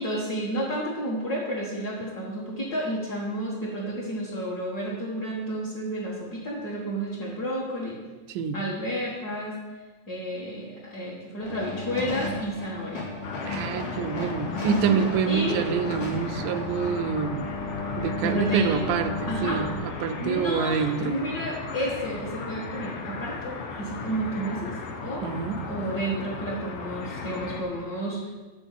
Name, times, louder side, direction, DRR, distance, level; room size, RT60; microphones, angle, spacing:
voice 1, 0.0-8.0 8.5-9.6 10.1-13.0 14.7-15.6 18.2-18.8 19.3-19.6 20.2-25.3 25.7-28.3, right 1 dB, 40° left, -7 dB, 1.5 m, -31 dB
sound 1, 11.4-19.8, left 2 dB, 60° left, 3.0 m, -34 dB
sound 2, 13.2-27.6, left 4 dB, 80° left, 2.6 m, -36 dB
voice 2, 13.4-17.5 18.0-21.2 25.2-25.6, right 7 dB, 80° right, 9 dB, 2.0 m, -27 dB
9.9 x 4.5 x 7.3 m, 1.3 s
omnidirectional pair, 3.8 m